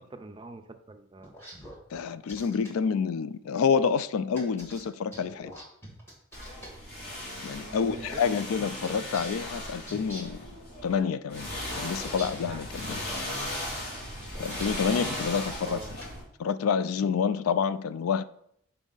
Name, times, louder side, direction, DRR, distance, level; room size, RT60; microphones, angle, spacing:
voice 1, 0.1-1.3 7.6-8.2 15.6-16.1, right 3 dB, 20° right, 0.4 m, -44 dB
sound 1, 1.2-2.7 4.3-6.7 8.8-10.4 11.7-13.3 14.3-15.1 15.6-16.1, equal, 10° left, 1.3 m, -45 dB
voice 2, 1.9-5.5 7.4-10.4 10.8-13.2 14.4-15.8 16.4-18.2, left 6 dB, 80° left, 0.3 m, -28 dB
sound 2, 6.3-11.0 11.3-16.2, left 1 dB, 50° left, 2.0 m, -37 dB
6.2 x 4.4 x 3.9 m
head